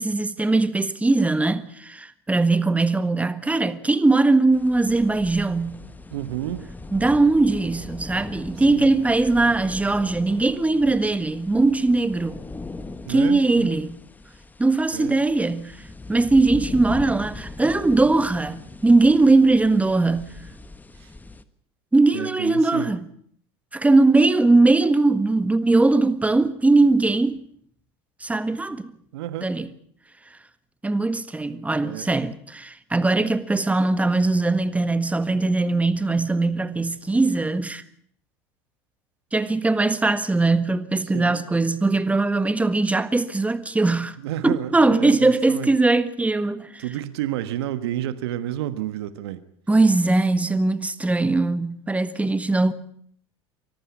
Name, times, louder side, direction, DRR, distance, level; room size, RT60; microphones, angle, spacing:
voice 1, 0.0-5.8 6.9-12.4 13.1-14.0 14.6-15.8 16.1-20.3 21.9-23.1 23.7-27.4 28.2-28.9 29.4-29.7 30.8-37.8 39.3-44.2 44.4-46.8 49.7-52.7, right 3 dB, 10° right, 1.6 m, -20 dB
sound 1, 4.5-21.4, left 2 dB, 15° left, 1.4 m, -39 dB
voice 2, 6.1-6.7 8.7-8.9 13.0-13.8 14.9-15.2 21.0-21.1 22.1-22.9 29.1-29.5 31.8-32.1 41.1-41.5 44.2-45.7 46.8-49.4, right 12 dB, 80° right, 1.4 m, -31 dB
24.0 x 14.0 x 8.4 m
hypercardioid pair, 90°, 13 cm